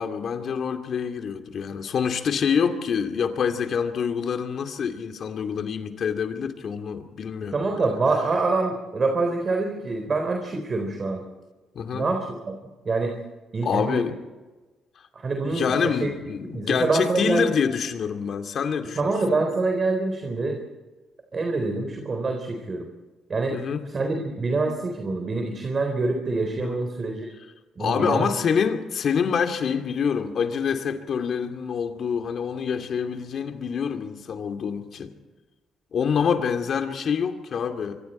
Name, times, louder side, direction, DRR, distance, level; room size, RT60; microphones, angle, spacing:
voice 1, 0.0-7.6 11.7-12.1 13.6-14.2 15.4-19.4 23.5-23.8 26.6-26.8 27.8-35.1 35.9-38.0, left 6 dB, 60° left, 5 dB, 2.5 m, -26 dB
voice 2, 7.5-11.2 11.9-12.5 12.9-13.2 13.5-14.0 15.1-16.1 16.5-17.5 18.9-20.6 21.3-22.9 23.3-23.6 23.9-27.3 27.8-28.3, right 3 dB, 40° right, 4 dB, 3.8 m, -25 dB
25.0 x 25.0 x 4.4 m, 1.2 s
cardioid pair, 90°, 0 cm